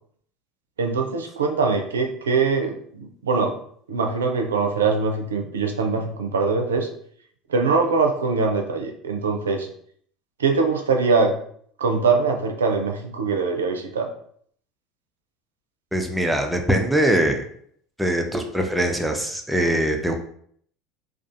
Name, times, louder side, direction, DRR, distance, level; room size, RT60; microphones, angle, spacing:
voice 1, 0.8-3.6 3.9-6.9 7.5-9.7 10.4-11.3 11.8-14.1, right 4 dB, 85° right, 4 dB, 0.4 m, -22 dB
voice 2, 15.9-17.4 18.0-20.1, right 1 dB, 5° right, 3 dB, 0.4 m, -22 dB
2.4 x 2.3 x 2.5 m, 0.62 s
hypercardioid pair, 75°, 0 cm